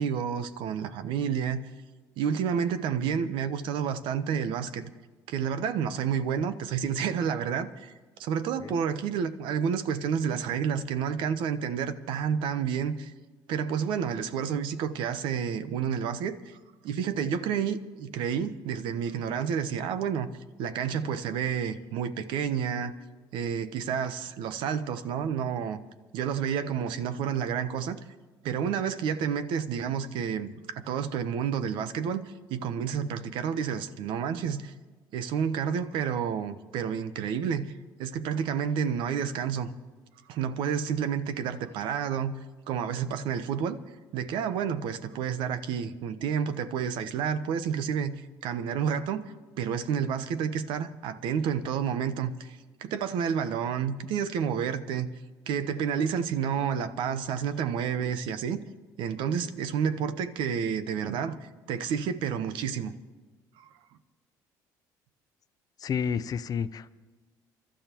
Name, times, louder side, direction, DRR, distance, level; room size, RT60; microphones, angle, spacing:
voice 1, 0.0-1.6 2.2-4.9 5.3-7.9 8.2-13.1 13.5-16.6 16.8-20.3 20.6-22.9 23.3-25.8 26.1-28.0 28.4-34.7 35.1-37.7 38.0-39.7 40.3-42.3 42.7-43.8 44.1-55.1 55.5-58.6 59.0-62.9 63.6-63.7, right 7 dB, 75° right, 11 dB, 1.0 m, -30 dB
voice 2, 65.8-66.9, left 7 dB, 50° left, 15 dB, 0.6 m, -30 dB
28.5 x 13.0 x 3.0 m, 1.3 s
supercardioid pair, 85°, 8 cm